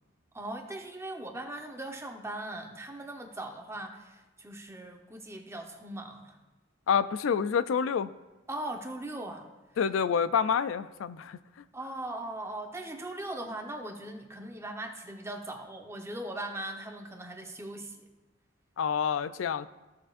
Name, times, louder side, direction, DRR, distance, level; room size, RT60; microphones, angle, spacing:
voice 1, 0.3-6.4 8.5-9.5 11.7-18.1, right 1 dB, 15° right, 3 dB, 0.9 m, -39 dB
voice 2, 6.9-8.1 9.8-11.4 18.8-19.7, left 7 dB, 85° left, 14 dB, 0.4 m, -27 dB
15.5 x 6.7 x 2.5 m, 1.2 s
head